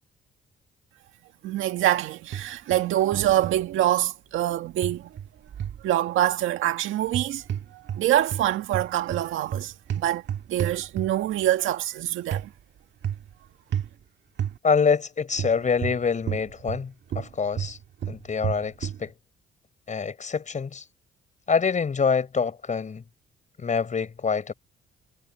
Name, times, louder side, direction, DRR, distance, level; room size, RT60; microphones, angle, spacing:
voice 1, 1.4-5.0 5.8-7.4 7.7-10.2 10.5-12.5, right 13 dB, 85° right, 2.0 m, -25 dB
sound 1, 2.3-2.8 3.1-3.6 4.8-5.8 7.0-8.0 8.3-11.3 12.3-12.5 13.0-13.3 13.7-13.9 14.4-14.6 15.4-16.8 17.1-19.0, right 9 dB, 65° right, 2.0 m, -31 dB
voice 2, 14.6-17.8 18.1-19.1 19.9-20.8 21.5-23.0 23.6-24.5, left 5 dB, 40° left, 4.6 m, -25 dB
cardioid pair, 90°, 20 cm